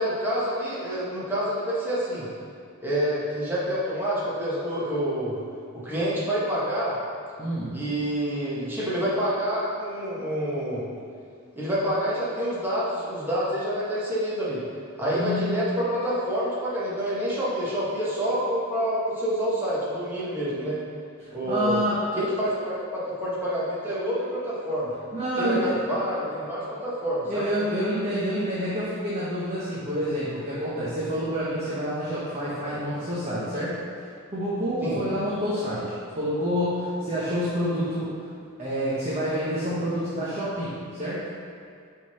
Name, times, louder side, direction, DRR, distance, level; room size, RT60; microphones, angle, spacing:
voice 1, 0.0-2.3 2.8-5.4 5.7-6.9 7.7-10.8 11.5-14.6 15.0-20.8 21.3-21.8 22.2-24.9 25.4-27.5 34.8-35.0, equal, 10° right, -9 dB, 1.5 m, -27 dB
voice 2, 7.4-7.8 15.1-15.7 21.2-22.0 25.1-25.7 27.3-33.8 34.3-38.1 38.6-41.2, equal, 30° right, -9 dB, 1.0 m, -28 dB
6.0 x 3.8 x 5.5 m, 2.3 s
head